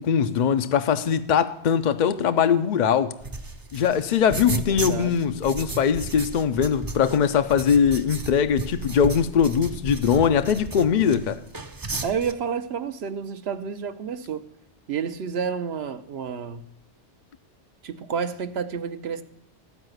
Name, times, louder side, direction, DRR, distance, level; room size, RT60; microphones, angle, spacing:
voice 1, 0.0-3.1 3.7-11.4, left 7 dB, 60° left, 0.5 m, -21 dB
sound 1, 3.2-12.3, right 3 dB, 30° right, 0.4 m, -34 dB
voice 2, 4.3-5.1 12.0-14.4 14.9-16.7 17.8-19.2, right 6 dB, 70° right, 0.9 m, -30 dB
14.0 x 4.8 x 7.8 m
omnidirectional pair, 1.2 m